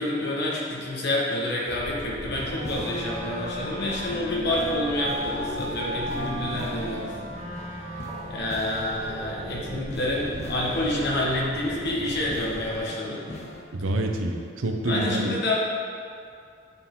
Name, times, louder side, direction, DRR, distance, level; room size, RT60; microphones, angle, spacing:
voice 1, 0.0-7.1 7.7-8.0 8.3-13.2 14.8-15.5, left 1 dB, 60° left, -4 dB, 1.4 m, -28 dB
sound 1, 1.7-12.8, equal, ahead, 0.7 m, -39 dB
sound 2, 2.4-13.6, left 1 dB, 35° left, 0.6 m, -43 dB
Wind instrument woodwind instrument, 2.4-9.9, right 1 dB, 45° right, 1.6 m, -36 dB
voice 2, 13.7-15.3, right 1 dB, 90° right, 4 dB, 0.7 m, -27 dB
8.9 x 4.7 x 3.7 m, 2.4 s
head